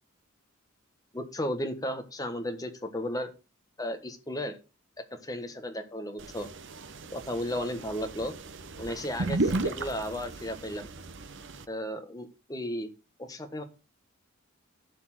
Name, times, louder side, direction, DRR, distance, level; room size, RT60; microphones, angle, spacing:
voice 1, 1.1-3.3 3.8-4.6 5.2-6.5 7.1-8.3 8.8-10.9 11.7-12.9 13.2-13.6, left 1 dB, 15° left, 6 dB, 1.4 m, -34 dB
sound 1, 6.2-11.6, right 2 dB, 60° right, 0.9 m, -35 dB
11.5 x 4.4 x 7.6 m, 0.32 s
head